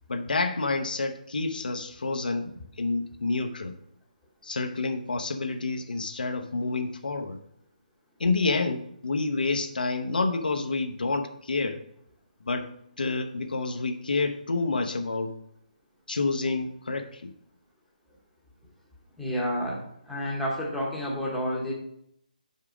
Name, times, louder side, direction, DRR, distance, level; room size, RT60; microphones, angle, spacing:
voice 1, 0.1-2.5 2.8-3.8 4.4-7.4 8.2-11.8 12.4-12.7 13.0-15.3 16.1-17.3, left 3 dB, 90° left, 6 dB, 0.8 m, -28 dB
voice 2, 19.2-21.7, equal, ahead, -6 dB, 0.9 m, -30 dB
5.5 x 4.8 x 5.0 m, 0.73 s
hypercardioid pair, 170°, 5 cm